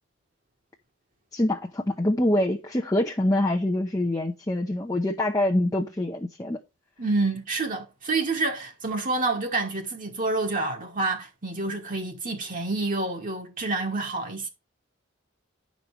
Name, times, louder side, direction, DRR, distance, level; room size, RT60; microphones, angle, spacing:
voice 1, 1.3-6.6, left 1 dB, 15° left, 0.8 m, -25 dB
voice 2, 7.0-14.5, right 3 dB, 40° right, 1.4 m, -28 dB
10.5 x 5.3 x 4.6 m
head